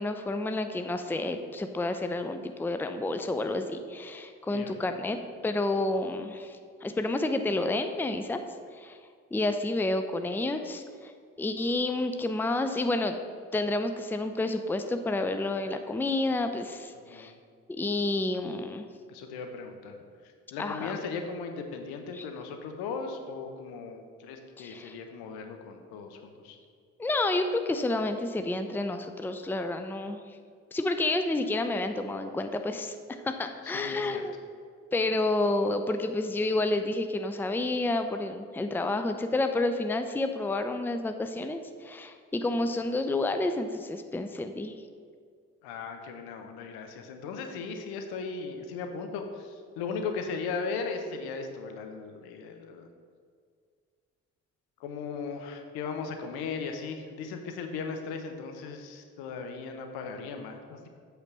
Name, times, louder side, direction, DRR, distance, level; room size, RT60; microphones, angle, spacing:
voice 1, 0.0-5.2 5.4-8.4 8.7-9.0 9.3-11.1 11.4-13.1 13.5-17.3 17.7-18.9 20.6-21.0 22.1-22.3 24.6-25.0 27.0-30.2 30.7-33.0 33.2-34.3 34.9-44.7, left 2 dB, 5° left, 8 dB, 0.6 m, -30 dB
voice 2, 17.1-17.4 19.1-19.9 20.2-26.6 33.6-34.3 45.6-52.9 54.8-60.9, left 5 dB, 70° left, 5 dB, 1.0 m, -37 dB
8.0 x 4.3 x 6.7 m, 2.1 s
hypercardioid pair, 45°, 39 cm